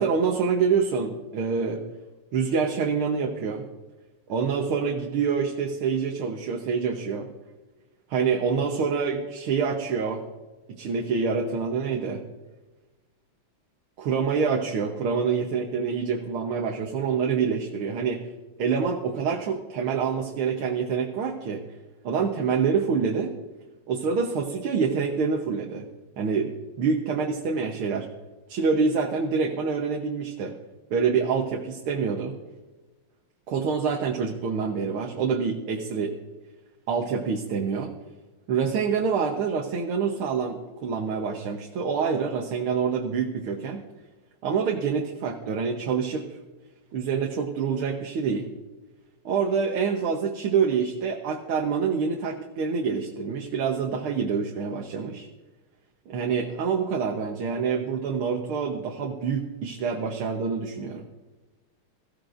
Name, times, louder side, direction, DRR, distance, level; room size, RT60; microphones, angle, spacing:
voice 1, 0.0-1.8 2.3-3.6 4.3-7.3 8.1-10.2 10.7-12.2 14.0-18.3 18.6-21.6 22.0-23.3 23.9-25.9 26.2-26.5 26.8-28.1 28.5-30.5 30.9-32.3 33.5-36.1 36.9-37.9 38.5-43.9 44.4-46.3 46.9-48.5 49.3-55.3 56.1-61.1, right 5 dB, 80° right, 2 dB, 1.9 m, -26 dB
20.5 x 15.0 x 2.6 m, 1.2 s
omnidirectional pair, 2.3 m